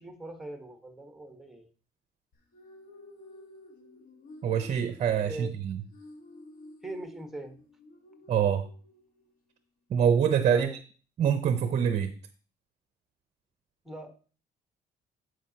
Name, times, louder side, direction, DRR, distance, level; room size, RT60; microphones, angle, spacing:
voice 1, 0.0-1.6 5.2-5.5 6.8-7.6 10.5-10.8 13.8-14.1, right 2 dB, ahead, 6 dB, 1.3 m, -41 dB
sound 1, 2.3-9.4, left 2 dB, 55° left, 1.5 m, -52 dB
voice 2, 4.4-5.8 8.3-8.7 9.9-10.7 11.2-12.1, right 8 dB, 40° right, 10 dB, 0.6 m, -25 dB
13.0 x 4.9 x 2.8 m, 0.39 s
cardioid pair, 110°, 17 cm